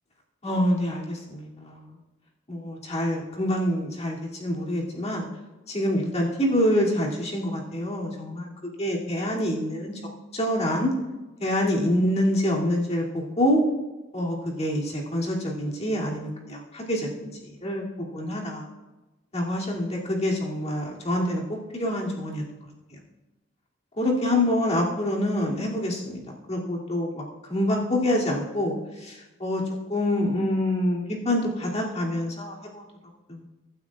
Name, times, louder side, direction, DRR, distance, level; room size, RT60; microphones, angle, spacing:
voice 1, 0.4-1.8 2.5-5.3 5.7-8.5 8.8-9.9 10.3-10.9 11.4-13.6 14.1-17.1 17.6-18.6 19.3-21.4 21.7-22.4 22.9-23.0 24.0-26.2 26.5-27.2 27.5-29.6 29.9-32.8 33.3-33.4, left 1 dB, 35° left, -4 dB, 2.8 m, -26 dB
23.5 x 9.2 x 2.5 m, 1.1 s
head